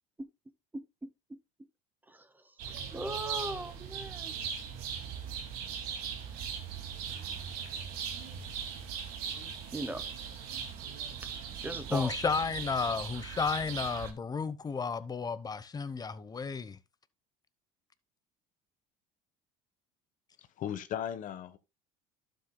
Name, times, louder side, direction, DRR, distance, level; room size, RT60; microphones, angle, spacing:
voice 1, 0.7-1.4 2.1-2.6 2.9-4.3 9.7-10.0 11.2-12.1, right 2 dB, 10° right, 0.9 m, -39 dB
sound 1, 2.6-14.1, right 7 dB, 75° right, 2.3 m, -39 dB
voice 2, 11.9-16.8, left 5 dB, 25° left, 0.9 m, -32 dB
voice 3, 20.4-21.6, left 10 dB, 55° left, 1.1 m, -37 dB
12.0 x 7.9 x 2.2 m
supercardioid pair, 90°, 16 cm